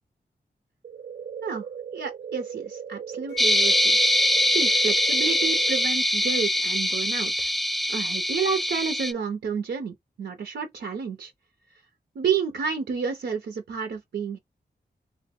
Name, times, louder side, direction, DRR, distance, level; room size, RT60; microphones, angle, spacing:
sound 1, 0.8-5.9, right 7 dB, 50° right, 0.5 m, -38 dB
voice 1, 1.9-4.0 4.5-7.5 7.9-11.3 12.1-14.4, right 6 dB, 85° right, 0.7 m, -30 dB
Wind instrument woodwind instrument, 3.3-7.0, left 11 dB, 75° left, 0.4 m, -33 dB
sound 2, 3.4-9.1, left 1 dB, ahead, 0.4 m, -23 dB
3.2 x 2.1 x 4.2 m
cardioid pair, 50°, 18 cm